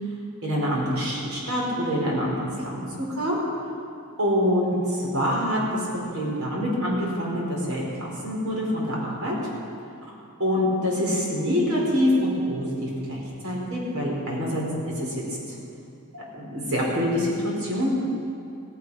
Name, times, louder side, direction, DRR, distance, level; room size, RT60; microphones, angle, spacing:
voice 1, 0.4-3.4 4.2-9.4 10.4-15.2 16.1-18.1, equal, 70° right, -4 dB, 4.6 m, -26 dB
16.0 x 16.0 x 4.9 m, 2.6 s
head